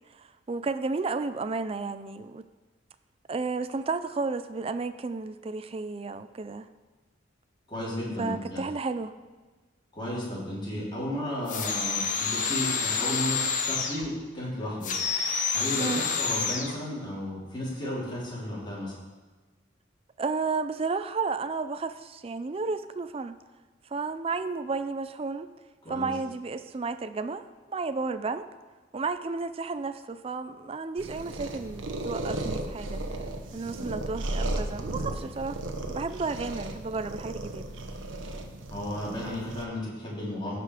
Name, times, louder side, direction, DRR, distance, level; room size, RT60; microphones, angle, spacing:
voice 1, 0.1-2.4 3.3-6.7 8.2-9.1 15.8-16.0 20.2-23.4 23.9-25.5 25.9-27.4 27.7-28.4 28.9-33.0 33.5-35.6 35.9-37.7, right 4 dB, 30° right, 10 dB, 0.4 m, -32 dB
voice 2, 7.7-8.6 9.9-18.9 25.8-26.1 38.7-40.6, left 1 dB, 25° left, -6 dB, 3.8 m, -34 dB
sound 1, 11.5-14.1 14.8-16.7, left 5 dB, 40° left, 1.0 m, -28 dB
sound 2, 31.0-39.6, right 1 dB, 85° right, 1.1 m, -35 dB
16.0 x 5.7 x 4.9 m, 1.3 s
head